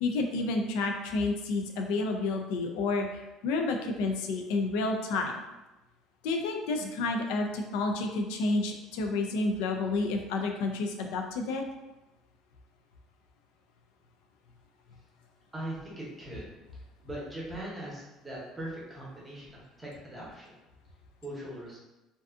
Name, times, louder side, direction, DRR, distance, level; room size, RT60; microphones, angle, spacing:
voice 1, 0.0-5.4 6.2-11.6, left 3 dB, 90° left, 3 dB, 0.3 m, -30 dB
voice 2, 15.5-20.5 21.2-21.8, right 1 dB, 10° right, -5 dB, 0.8 m, -41 dB
2.5 x 2.3 x 2.4 m, 1.0 s
cardioid pair, 145°, 0 cm